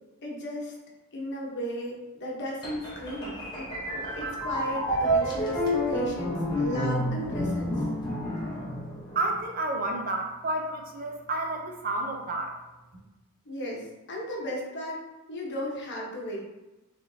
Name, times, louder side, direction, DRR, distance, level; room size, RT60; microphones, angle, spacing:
voice 1, 0.2-0.7 1.1-7.9 13.4-15.0 15.3-16.4, equal, 55° left, -2 dB, 1.0 m, -35 dB
sound 1, 2.6-9.3, equal, 20° left, 1.0 m, -29 dB
voice 2, 9.1-12.5, right 2 dB, 40° right, 2 dB, 0.5 m, -30 dB
5.0 x 3.3 x 2.7 m, 1.1 s
head